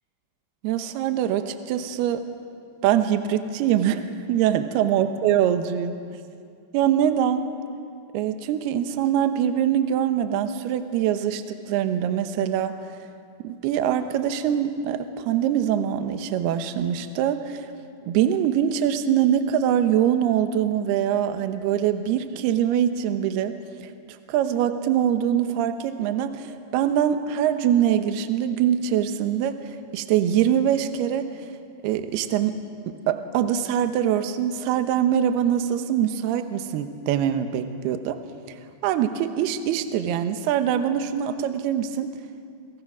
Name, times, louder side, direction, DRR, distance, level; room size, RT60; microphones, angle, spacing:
voice 1, 0.6-2.2 2.8-6.0 6.7-7.5 8.1-12.8 13.4-17.7 18.0-23.5 23.8-23.9 24.3-29.6 29.9-31.2 31.8-32.6 32.9-38.2 38.8-42.1, right 10 dB, 75° right, 8 dB, 2.9 m, -23 dB
29.0 x 25.5 x 6.2 m, 2.3 s
omnidirectional pair, 5.1 m